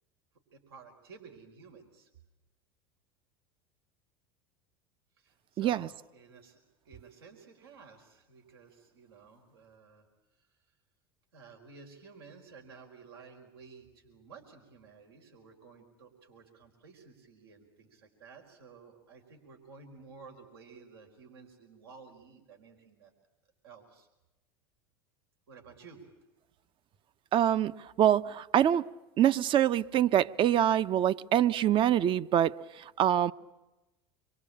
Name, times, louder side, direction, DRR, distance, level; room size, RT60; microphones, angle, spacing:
voice 1, 0.5-2.1 5.2-6.6 6.8-10.0 10.4-10.5 11.3-23.1 23.6-24.1 25.5-26.0, right 5 dB, 85° right, 3 dB, 4.9 m, -53 dB
voice 2, 5.6-5.9 27.3-27.7 28.0-28.8 29.2-33.3, right 11 dB, 45° right, 15 dB, 0.9 m, -25 dB
26.5 x 24.0 x 8.7 m, 1.0 s
hypercardioid pair, 95°, 12 cm